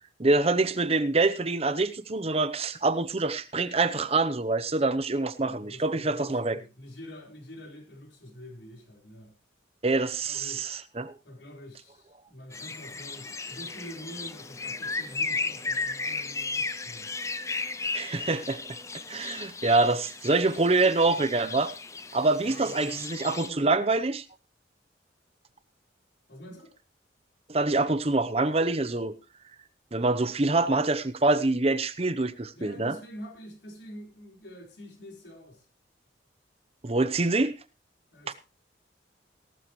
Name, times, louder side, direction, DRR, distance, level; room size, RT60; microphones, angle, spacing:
voice 1, 0.2-6.6 9.8-11.1 17.9-18.6 19.1-21.7 22.1-24.2 27.5-29.1 29.9-32.9 36.8-37.5 38.3-38.4, right 3 dB, 35° right, 0.7 m, -25 dB
voice 2, 5.4-9.3 10.2-10.7 11.2-17.1 22.5-23.9 26.3-26.7 32.5-35.7 38.1-38.3, equal, 70° left, 4.2 m, -46 dB
sound 1, 12.5-23.5, left 3 dB, 15° left, 0.6 m, -35 dB
17.5 x 12.5 x 3.1 m
head